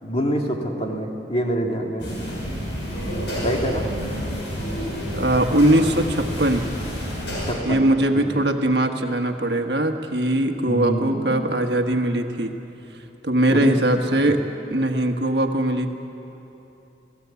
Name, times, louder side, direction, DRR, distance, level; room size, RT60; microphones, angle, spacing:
voice 1, 0.0-2.4 3.4-3.9 7.5-8.3 10.7-11.4 13.5-13.8 14.1-14.3, equal, 30° left, 1 dB, 2.2 m, -26 dB
sound 1, 2.0-7.5, equal, 75° left, 7.0 m, -29 dB
voice 2, 5.1-6.7 7.6-12.5 13.2-14.4 14.7-15.9, right 1 dB, 65° right, 5 dB, 1.5 m, -21 dB
29.0 x 17.0 x 8.3 m, 3.0 s
head